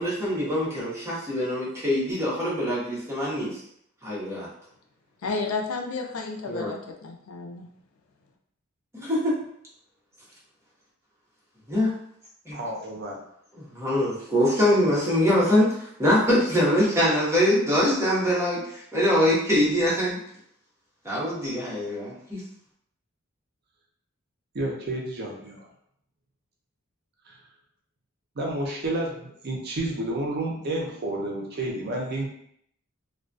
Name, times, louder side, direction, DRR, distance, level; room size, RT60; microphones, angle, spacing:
voice 1, 0.0-3.6 4.0-4.5 6.5-6.7 8.9-9.4 11.7-11.9 12.5-12.6 13.6-20.2 21.0-22.4, equal, 15° right, -7 dB, 0.8 m, -23 dB
voice 2, 5.2-7.7, left 3 dB, 90° left, 2 dB, 0.4 m, -32 dB
voice 3, 12.5-13.2 24.5-25.7 27.3-27.4 28.4-32.3, right 1 dB, 50° right, -1 dB, 0.6 m, -30 dB
2.2 x 2.2 x 2.5 m, 0.68 s
head